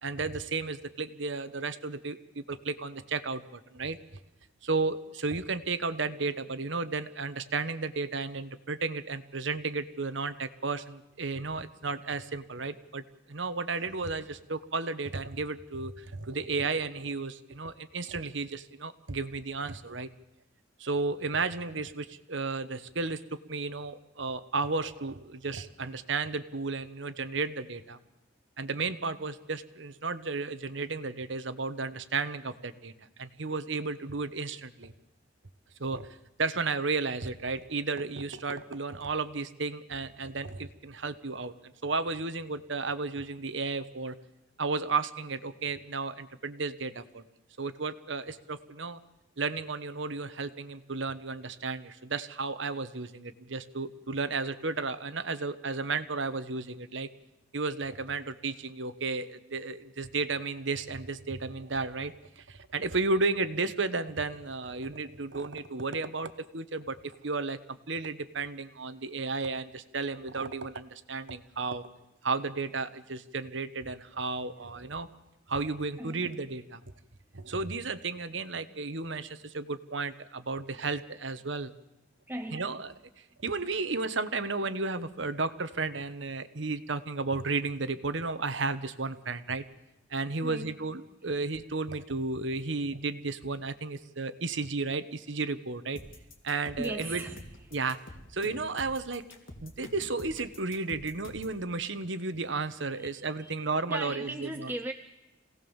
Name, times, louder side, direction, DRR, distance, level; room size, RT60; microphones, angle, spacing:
voice 1, 0.0-4.0 4.6-13.0 13.3-20.1 20.8-23.2 23.5-28.0 28.6-32.9 33.2-34.9 35.8-36.1 36.4-41.5 41.8-44.1 44.6-47.2 47.6-49.0 49.4-57.1 57.5-67.6 67.9-71.9 72.2-75.1 75.5-76.8 77.3-81.7 82.5-82.9 83.4-89.6 90.1-96.0 96.4-97.2 97.7-98.0 98.3-99.2 99.6-104.5, right 3 dB, 65° right, 10 dB, 1.3 m, -33 dB
voice 2, 76.0-76.3 82.3-82.7 90.4-90.8 91.2-91.3 96.8-97.8 102.9-103.5 103.9-104.9, right 1 dB, 10° right, 6 dB, 0.7 m, -38 dB
sound 1, 96.0-101.6, left 1 dB, 85° left, 3.2 m, -47 dB
26.5 x 18.0 x 7.2 m, 0.95 s
head